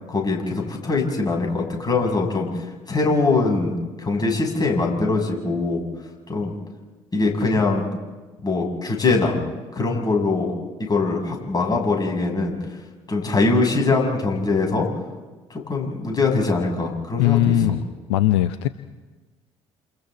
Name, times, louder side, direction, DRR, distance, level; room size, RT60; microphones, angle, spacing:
voice 1, 0.1-2.5 2.9-3.7 4.0-5.8 6.3-6.5 7.1-7.8 8.4-9.4 9.7-10.5 10.8-12.6 13.1-14.9 15.5-17.6, left 3 dB, 25° left, 0 dB, 7.4 m, -22 dB
voice 2, 17.2-18.7, left 13 dB, 70° left, 13 dB, 0.6 m, -20 dB
29.0 x 28.0 x 4.0 m, 1.3 s
figure-of-eight pair, 50°, 15 cm